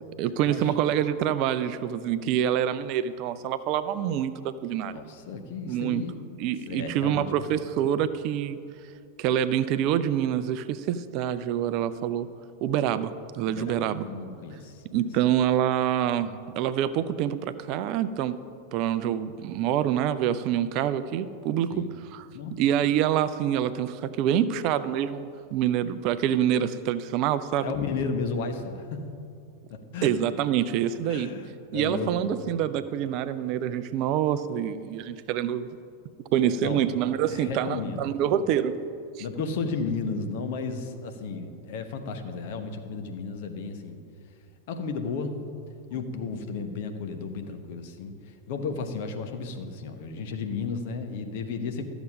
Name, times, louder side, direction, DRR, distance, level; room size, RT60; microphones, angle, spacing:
voice 1, 0.2-5.0 5.7-6.0 6.4-8.6 9.2-12.3 12.6-14.1 14.9-18.4 18.7-21.9 22.1-22.3 22.6-27.7 30.0-31.3 31.7-35.7 36.3-38.7 39.2-39.3, right 10 dB, 40° right, 13 dB, 0.4 m, -26 dB
voice 2, 4.9-6.1 6.7-7.2 13.4-15.0 21.7-21.9 22.3-22.6 27.6-29.0 29.7-30.1 31.1-32.3 36.6-36.9 37.3-38.0 38.3-38.4 39.2-44.0 44.7-45.4 45.9-51.9, left 4 dB, 50° left, 6 dB, 1.0 m, -33 dB
13.0 x 7.1 x 5.1 m, 2.4 s
figure-of-eight pair, 90°, 0 cm